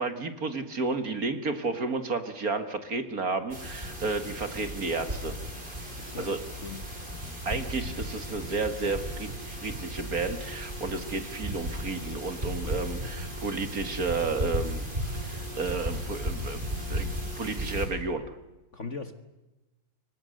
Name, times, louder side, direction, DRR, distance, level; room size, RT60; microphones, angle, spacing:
voice 1, 0.0-5.3 6.2-6.4 7.5-14.8 15.2-17.1 17.4-18.3, right 3 dB, 45° right, 9 dB, 2.2 m, -32 dB
sound 1, 3.5-17.9, equal, 20° right, 6.4 m, -35 dB
voice 2, 6.0-6.8 12.6-12.8 18.7-19.2, left 4 dB, 40° left, 9 dB, 1.6 m, -40 dB
29.5 x 24.5 x 6.6 m, 1.0 s
omnidirectional pair, 2.3 m